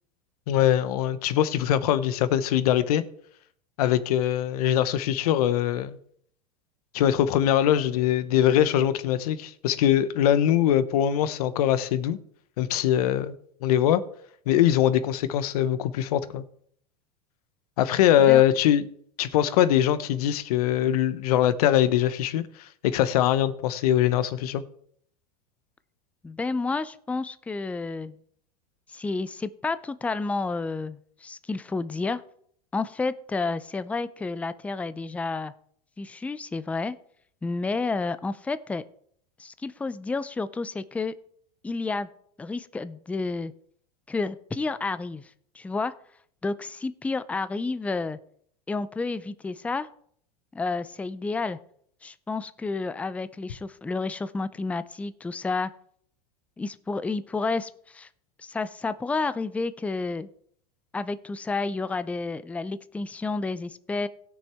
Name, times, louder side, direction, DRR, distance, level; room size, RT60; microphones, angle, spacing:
voice 1, 0.5-3.0 3.8-6.0 6.9-12.2 12.6-13.3 13.6-14.0 14.5-16.4 17.8-18.8 19.2-24.6, left 11 dB, 75° left, 0.8 m, -22 dB
voice 2, 26.2-28.2 28.9-32.2 32.7-35.5 36.0-37.0 37.4-38.8 39.4-41.1 41.6-42.1 42.4-43.5 44.1-45.2 45.5-45.9 46.4-48.2 48.7-49.9 50.5-51.6 52.0-55.7 56.6-58.1 58.4-60.3 60.9-64.1, left 3 dB, 5° left, 0.4 m, -30 dB
17.0 x 6.3 x 3.5 m
hypercardioid pair, 110°, 19 cm